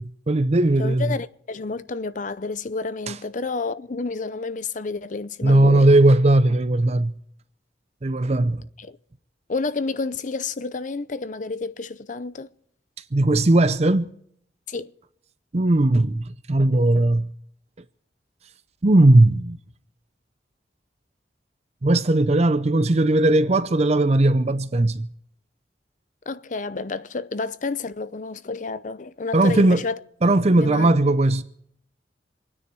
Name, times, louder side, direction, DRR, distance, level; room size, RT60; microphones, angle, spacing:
voice 1, 0.0-1.1 3.1-3.2 5.4-7.2 8.0-8.7 13.1-14.1 15.5-17.3 18.8-19.6 21.8-25.1 29.3-29.9 30.2-31.4, right 2 dB, 40° right, 0.6 m, -18 dB
voice 2, 0.8-5.9 8.8-9.0 9.5-12.5 14.7-14.9 26.3-30.0 30.5-30.9, left 3 dB, 45° left, 0.6 m, -30 dB
26.5 x 9.8 x 4.7 m
head